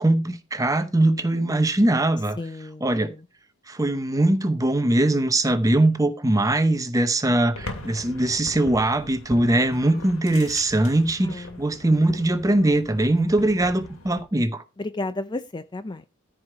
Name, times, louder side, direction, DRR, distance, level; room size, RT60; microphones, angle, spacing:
voice 1, 0.0-2.4 2.8-3.1 3.7-14.6, right 1 dB, 15° right, 0.8 m, -21 dB
voice 2, 2.4-2.9 3.1-3.3 11.2-11.6 14.8-16.0, left 2 dB, 20° left, 0.4 m, -33 dB
sound 1, 7.5-14.2, left 2 dB, 70° left, 2.6 m, -41 dB
13.5 x 4.9 x 4.7 m
head